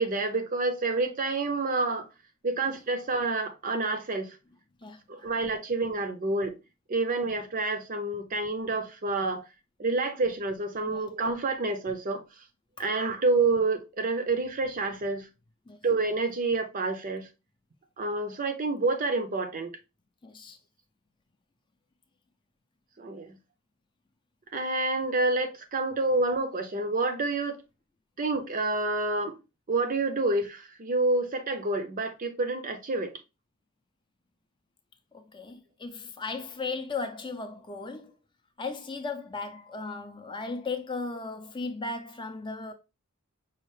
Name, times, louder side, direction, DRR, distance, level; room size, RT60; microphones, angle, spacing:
voice 1, 0.0-2.1 2.4-4.4 5.1-6.6 6.9-9.4 9.8-12.2 12.8-15.3 15.8-17.3 18.0-19.8 23.0-23.4 24.5-27.6 28.2-29.4 29.7-33.2, right 3 dB, 40° right, 0.6 m, -28 dB
voice 2, 20.2-20.6 35.3-38.1 38.6-42.7, left 3 dB, 20° left, 0.5 m, -36 dB
5.5 x 2.4 x 3.2 m
head